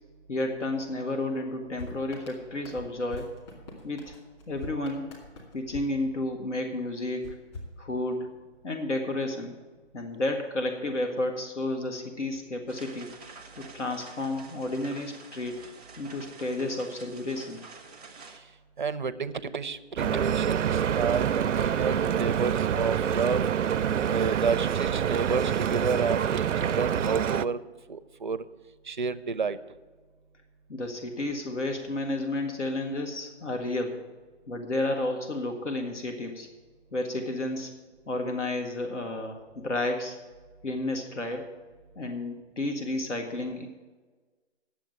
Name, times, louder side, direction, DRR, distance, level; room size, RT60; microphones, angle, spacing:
voice 1, 0.3-3.3 3.8-4.1 4.5-5.1 5.5-7.4 7.8-8.3 8.6-9.6 9.9-13.1 13.6-15.6 16.0-17.6 30.7-34.0 34.5-36.5 36.9-37.7 38.1-40.2 40.6-41.5 42.0-43.7, left 2 dB, 75° left, 4 dB, 1.8 m, -31 dB
sound 1, 1.8-6.6 7.2-8.4, left 2 dB, 25° left, 2.4 m, -45 dB
sound 2, 12.7-18.4, right 4 dB, ahead, 0.7 m, -48 dB
voice 2, 18.8-23.4 24.1-27.6 27.9-28.4 28.9-29.6, right 5 dB, 40° right, 13 dB, 0.5 m, -30 dB
Stream / Boat Water vehicle, 20.0-27.5, right 9 dB, 90° right, 0.5 m, -26 dB
9.8 x 7.2 x 9.1 m, 1.3 s
hypercardioid pair, 160°, 36 cm